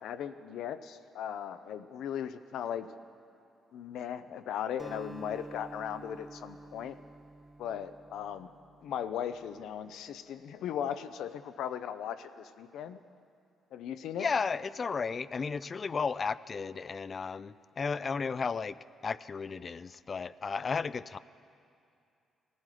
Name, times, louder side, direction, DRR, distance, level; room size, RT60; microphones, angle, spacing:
voice 1, 0.0-2.9 3.7-7.0 7.6-8.5 8.8-13.0 13.7-14.3, left 9 dB, 80° left, 12 dB, 0.6 m, -37 dB
Acoustic guitar, 4.8-9.3, right 2 dB, 10° right, 0.8 m, -50 dB
voice 2, 14.2-18.8 19.0-21.2, left 5 dB, 40° left, 17 dB, 0.4 m, -34 dB
19.0 x 14.0 x 5.0 m, 2.5 s
cardioid pair, 90°, 0 cm